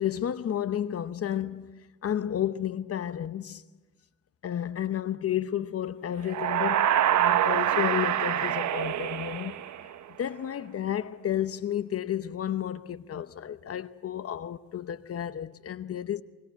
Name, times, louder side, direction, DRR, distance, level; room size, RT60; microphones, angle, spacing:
voice 1, 0.0-3.6 4.4-9.5 10.2-16.2, left 10 dB, 50° left, 0.9 m, -32 dB
sound 1, 6.2-10.1, right 11 dB, 70° right, 1.2 m, -26 dB
24.5 x 21.5 x 8.1 m
cardioid pair, 90°, 30 cm